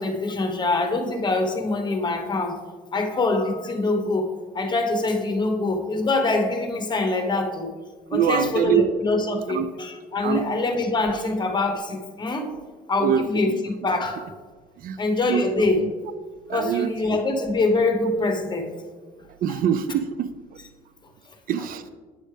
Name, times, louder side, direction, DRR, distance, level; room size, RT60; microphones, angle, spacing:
voice 1, 0.0-2.6 2.9-7.7 8.1-12.5 12.9-14.3 15.0-15.9 16.5-18.7 19.5-19.6, left 2 dB, 25° left, 4 dB, 1.0 m, -24 dB
voice 2, 8.1-8.9 9.5-9.7 10.2-10.4 13.0-13.6 14.8-15.0 15.3-15.4 15.8-15.9 16.5-16.9 19.4-20.3 21.5-21.8, right 9 dB, 55° right, 13 dB, 0.4 m, -24 dB
8.9 x 6.3 x 3.3 m, 1.5 s
cardioid pair, 110°, 17 cm